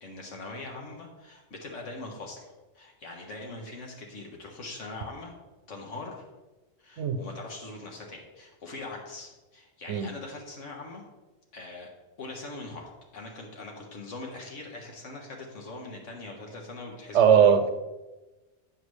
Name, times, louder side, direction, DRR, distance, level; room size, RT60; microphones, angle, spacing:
voice 1, 0.0-5.3 5.7-6.3 6.8-11.0 11.5-11.9 12.2-17.6, left 2 dB, 80° left, 1.8 m, -42 dB
voice 2, 17.1-17.7, right 7 dB, 70° right, 0.9 m, -19 dB
8.5 x 7.0 x 3.2 m
omnidirectional pair, 1.3 m